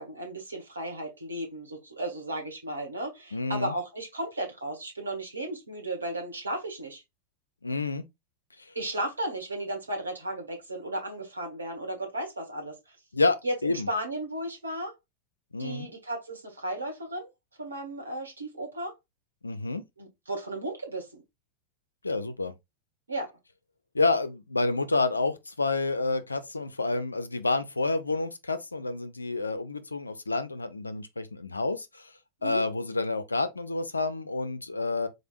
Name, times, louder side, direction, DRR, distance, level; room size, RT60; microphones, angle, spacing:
voice 1, 0.0-7.0 8.7-13.0 13.4-14.9 15.6-17.3 17.6-18.9 20.0-21.2 23.1-23.3 32.4-32.6, right 1 dB, 75° right, 1.5 m, -34 dB
voice 2, 3.3-3.7 7.6-8.1 8.6-8.7 13.1-13.9 15.5-15.9 19.4-19.8 22.0-22.5 23.9-32.1 32.4-35.1, left 3 dB, 80° left, 0.5 m, -29 dB
3.9 x 3.3 x 2.5 m
figure-of-eight pair, 90°, 0 cm